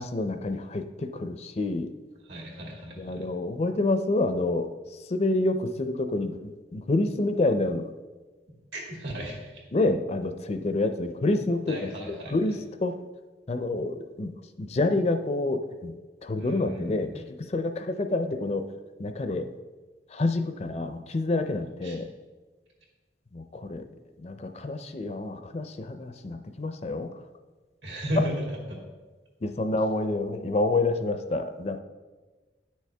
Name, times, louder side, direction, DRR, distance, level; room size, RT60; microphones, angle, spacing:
voice 1, 0.0-1.9 3.0-7.9 9.7-13.0 13.5-18.7 19.0-19.5 20.1-22.1 23.3-23.9 24.2-27.1 29.4-31.8, left 2 dB, 35° left, 8 dB, 0.4 m, -28 dB
voice 2, 2.3-3.2 8.5-9.6 11.7-12.3 16.3-17.2 21.8-22.0 27.8-28.8, equal, 80° right, -1 dB, 2.3 m, -34 dB
9.8 x 6.3 x 3.4 m, 1.3 s
head